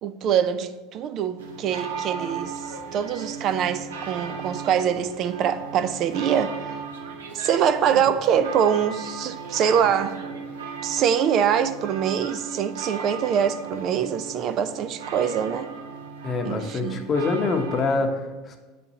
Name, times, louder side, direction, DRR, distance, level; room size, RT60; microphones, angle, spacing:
voice 1, 0.0-2.6 2.9-6.8 7.3-10.2 10.8-15.7 16.4-17.0, right 8 dB, 50° right, 0.3 m, -24 dB
sound 1, 1.4-18.0, right 6 dB, 85° right, 0.7 m, -36 dB
voice 2, 16.2-18.6, left 3 dB, 35° left, 0.8 m, -25 dB
8.3 x 4.2 x 2.7 m
hypercardioid pair, 90°, 0 cm